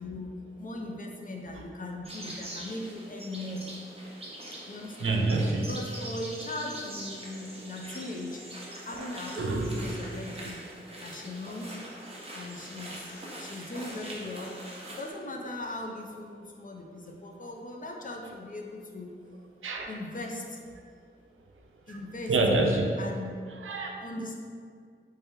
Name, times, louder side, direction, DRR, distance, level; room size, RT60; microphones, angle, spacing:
voice 1, 0.0-3.7 4.7-5.3 5.6-8.4 8.9-10.6 11.0-11.8 12.3-14.6 15.0-19.1 19.9-20.6 21.9-22.4 23.0-23.4 24.0-24.4, left 1 dB, 40° left, 1 dB, 0.5 m, -39 dB
sound 1, 2.0-15.1, right 1 dB, 30° right, 0.7 m, -43 dB
voice 2, 5.0-5.7 9.0-9.1 9.4-9.9 19.6-19.9 21.9-22.0 22.3-22.9 23.6-23.9, right 2 dB, 85° right, 2 dB, 0.5 m, -27 dB
3.3 x 2.8 x 3.6 m, 2.1 s
wide cardioid pair, 85°, 21 cm